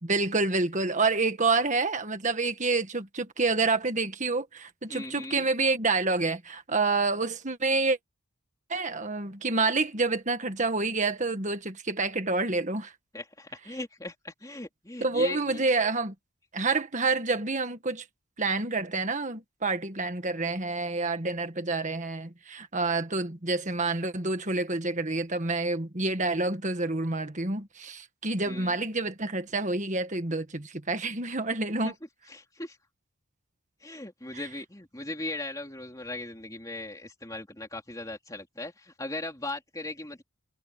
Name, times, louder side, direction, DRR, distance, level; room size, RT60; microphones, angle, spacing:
voice 1, 0.0-8.0 8.7-12.9 15.0-16.1 16.5-18.0 18.4-31.9 34.3-34.4, right 3 dB, 35° right, 1.7 m, -28 dB
voice 2, 4.9-5.5 13.1-15.6 28.5-28.8 31.8-31.9 32.3-32.8 33.8-40.2, left 2 dB, 15° left, 3.2 m, -38 dB
head